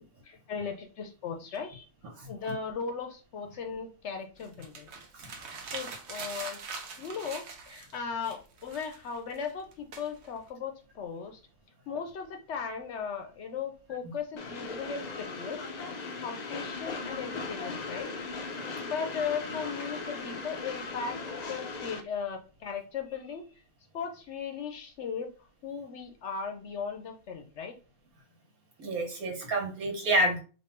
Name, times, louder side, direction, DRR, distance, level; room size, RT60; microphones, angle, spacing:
voice 1, 0.2-1.8 2.3-4.9 5.6-6.6 7.0-11.4 11.9-15.6 16.2-18.1 18.8-23.4 23.9-25.3 25.6-27.7, left 6 dB, 60° left, 5 dB, 0.8 m, -37 dB
sound 1, 4.4-8.0 8.2-10.5, right 5 dB, 55° right, 1.0 m, -43 dB
Train, 14.4-22.0, left 4 dB, 90° left, 0.3 m, -38 dB
voice 2, 28.8-30.4, right 1 dB, 85° right, 1 dB, 1.7 m, -29 dB
3.3 x 2.5 x 4.3 m, 0.35 s
omnidirectional pair, 1.5 m